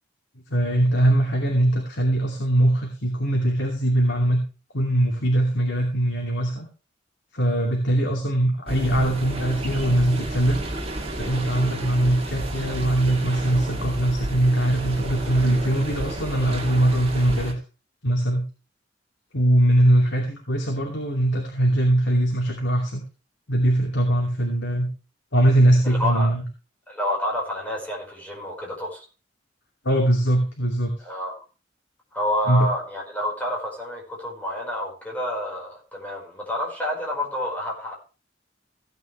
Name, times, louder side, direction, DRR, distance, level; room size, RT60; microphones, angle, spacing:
voice 1, 0.5-4.4 4.7-6.7 7.3-10.6 11.2-17.6 18.0-18.4 19.3-23.0 23.5-24.9 25.3-26.4 29.8-30.9 32.5-32.7, right 1 dB, 80° left, 0 dB, 2.9 m, -21 dB
sound 1, 8.7-17.5, right 1 dB, 35° right, 2.9 m, -31 dB
voice 2, 25.8-26.3 26.9-29.0 31.0-31.4 32.1-37.9, left 1 dB, 10° left, -3 dB, 5.2 m, -29 dB
16.5 x 9.3 x 3.4 m, 0.33 s
head